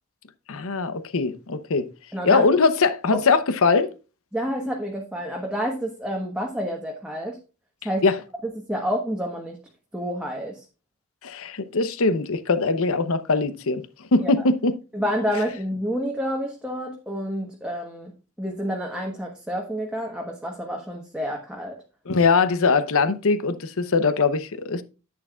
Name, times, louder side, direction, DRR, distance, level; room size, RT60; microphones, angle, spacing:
voice 1, 0.5-1.9 2.2-3.9 8.0-8.2 11.2-13.9 14.1-14.7 22.1-24.8, left 4 dB, 65° left, 0.8 m, -21 dB
voice 2, 2.1-2.5 3.1-3.2 4.3-7.4 7.8-8.0 8.7-9.6 9.9-10.6 14.2-14.5 14.9-18.1 18.4-21.8, equal, 5° right, 1.2 m, -29 dB
10.5 x 8.5 x 2.4 m
head